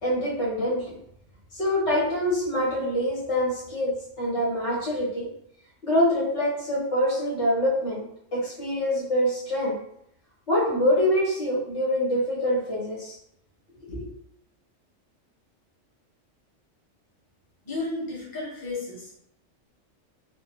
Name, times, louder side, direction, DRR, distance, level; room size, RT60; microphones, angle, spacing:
voice 1, 0.0-0.9 1.5-5.3 5.8-8.0 8.3-9.8 10.5-13.1 13.8-14.1, equal, 65° left, -7 dB, 1.4 m, -25 dB
voice 2, 17.6-19.2, left 2 dB, 20° left, -8 dB, 1.0 m, -33 dB
3.5 x 2.1 x 2.9 m, 0.72 s
omnidirectional pair, 1.3 m